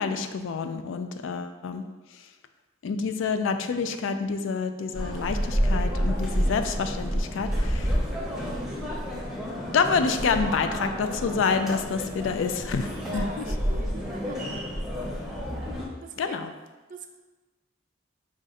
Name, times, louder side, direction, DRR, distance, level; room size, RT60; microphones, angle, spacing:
voice 1, 0.0-1.8 2.8-7.9 9.7-13.5 16.2-16.5, left 5 dB, 80° left, 8 dB, 0.4 m, -28 dB
sound 1, 4.9-15.9, equal, 5° right, 0.7 m, -29 dB
voice 2, 13.2-14.7 16.0-16.4 16.9-17.1, right 3 dB, 45° right, 5 dB, 0.4 m, -43 dB
4.7 x 2.5 x 4.1 m, 1.2 s
head